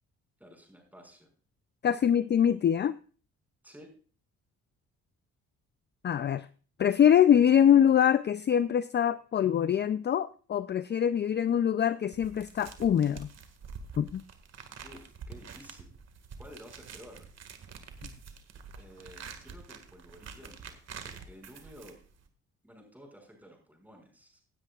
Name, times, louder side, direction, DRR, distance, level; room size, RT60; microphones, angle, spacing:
voice 1, 0.4-1.3 3.6-3.9 14.8-15.9 16.4-17.3 18.8-22.0 22.6-24.4, equal, 5° right, 1 dB, 5.6 m, -52 dB
voice 2, 1.8-3.0 6.0-6.5 6.8-13.3 14.0-14.2, left 9 dB, 35° left, 14 dB, 0.4 m, -24 dB
sound 1, 12.1-22.3, right 5 dB, 60° right, 1.9 m, -47 dB
17.5 x 9.7 x 2.4 m, 0.39 s
cardioid pair, 90°, 30 cm